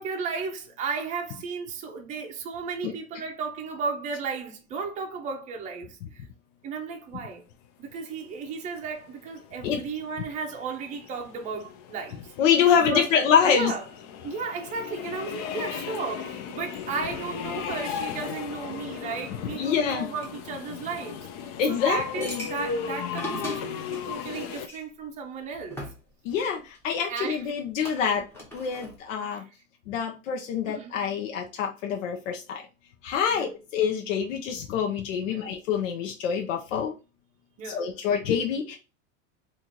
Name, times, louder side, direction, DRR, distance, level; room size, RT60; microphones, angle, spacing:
voice 1, 0.0-6.2 6.6-7.5 7.8-12.3 12.8-13.8 14.2-25.8 27.1-27.6 29.3-29.4 30.7-31.0 33.3-33.5 35.3-35.5 37.6-37.9, right 5 dB, 20° right, 0.6 m, -34 dB
sound 1, 8.8-24.7, left 7 dB, 40° left, 0.4 m, -37 dB
voice 2, 12.4-13.7 19.5-20.1 21.6-22.5 26.2-28.2 28.5-29.4 29.9-32.6 33.0-37.0 37.6-38.8, left 7 dB, 80° left, 0.8 m, -26 dB
sound 2, 20.2-20.3 22.2-24.8 25.5-26.8 27.4-27.5 27.9-29.0, equal, 5° left, 0.9 m, -39 dB
3.0 x 2.6 x 3.8 m
supercardioid pair, 150°, 38 cm